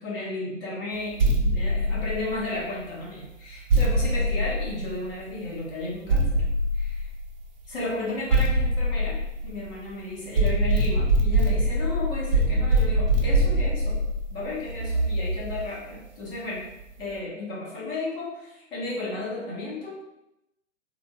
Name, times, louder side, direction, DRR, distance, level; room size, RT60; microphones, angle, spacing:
voice 1, 0.0-6.5 6.7-7.1 7.7-14.0 14.3-16.6 17.0-20.0, left 2 dB, 45° left, -5 dB, 1.0 m, -34 dB
sound 1, 1.2-2.7 3.7-5.3 6.1-7.5 8.3-9.9 10.4-15.6, right 1 dB, 40° right, 0.4 m, -23 dB
3.3 x 2.0 x 2.2 m, 0.88 s
figure-of-eight pair, 115°, 38 cm